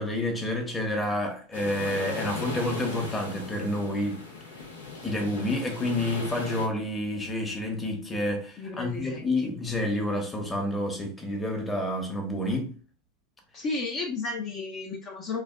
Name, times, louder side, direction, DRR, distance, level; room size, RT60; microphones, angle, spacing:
voice 1, 0.0-4.2 5.0-12.7, left 1 dB, 15° left, 1.0 m, -29 dB
sound 1, 1.5-6.7, left 4 dB, 85° left, 0.8 m, -38 dB
voice 2, 8.6-9.2 13.5-15.4, left 3 dB, 40° left, 0.7 m, -33 dB
3.3 x 2.3 x 2.3 m
hypercardioid pair, 90°, 0 cm